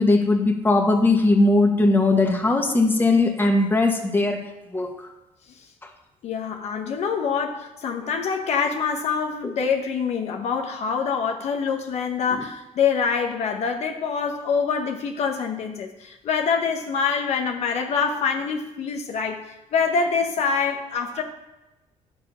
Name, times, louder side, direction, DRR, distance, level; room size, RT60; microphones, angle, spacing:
voice 1, 0.0-4.4 4.7-5.1 9.4-9.5 12.3-12.4, left 2 dB, 15° left, 2 dB, 1.6 m, -19 dB
voice 2, 6.2-19.5 19.7-21.2, left 6 dB, 65° left, 3 dB, 1.0 m, -25 dB
10.5 x 6.9 x 5.6 m, 1.0 s
cardioid pair, 105°, 12 cm